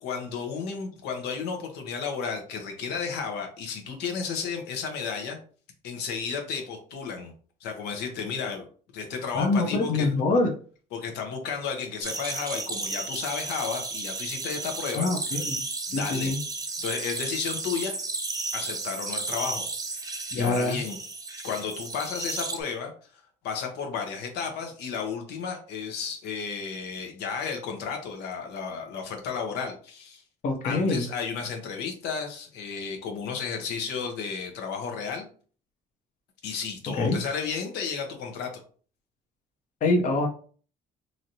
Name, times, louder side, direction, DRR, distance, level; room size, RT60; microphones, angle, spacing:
voice 1, 0.0-5.4 5.8-7.3 7.6-8.6 8.9-10.1 10.9-15.1 15.9-16.3 16.8-17.9 18.5-19.6 20.3-21.0 21.4-30.2 30.6-35.3 36.4-38.5, left 6 dB, 85° left, 3 dB, 0.8 m, -33 dB
voice 2, 9.3-10.5 14.9-15.6 15.9-16.4 20.3-20.8 30.4-31.1 37.0-37.2 39.8-40.3, left 3 dB, 50° left, 2 dB, 0.7 m, -25 dB
sound 1, 12.0-22.6, right 3 dB, 20° right, 0.6 m, -33 dB
3.1 x 2.6 x 2.7 m, 0.42 s
cardioid pair, 110°, 17 cm